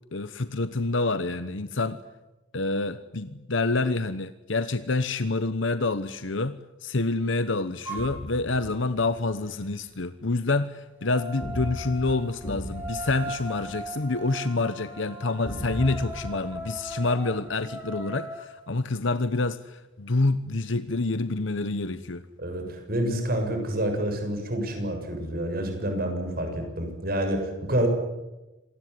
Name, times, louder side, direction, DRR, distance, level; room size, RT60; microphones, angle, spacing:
voice 1, 0.1-2.0 2.5-22.2, left 3 dB, 65° left, 12 dB, 1.1 m, -27 dB
sound 1, 7.9-8.1 11.0-18.5, right 1 dB, 10° right, 6.9 m, -38 dB
sound 2, 8.0-9.3 11.4-14.4 15.4-17.6, equal, 30° left, 5.6 m, -38 dB
voice 2, 22.4-27.9, right 1 dB, 45° right, 5 dB, 7.1 m, -28 dB
26.5 x 19.5 x 9.6 m, 1.0 s
head